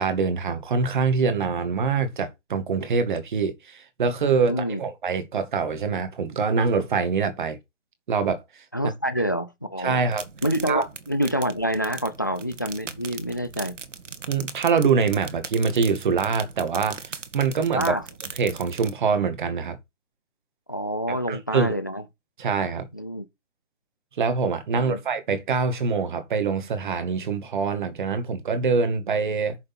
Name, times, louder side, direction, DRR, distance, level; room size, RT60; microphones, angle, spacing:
voice 1, 0.0-7.6 8.1-8.4 8.8-8.9 9.8-10.2 10.7-10.8 14.3-18.0 18.4-19.8 21.1-21.8 22.4-22.9 24.2-29.6, right 5 dB, 40° right, 2.0 m, -24 dB
voice 2, 4.4-4.8 8.7-10.0 10.4-13.7 17.7-18.1 20.7-22.0 22.9-23.3 24.7-25.0, equal, 15° left, 0.4 m, -27 dB
sound 1, 10.1-18.9, right 5 dB, 85° right, 1.9 m, -40 dB
8.3 x 6.7 x 4.3 m
hypercardioid pair, 165°, 36 cm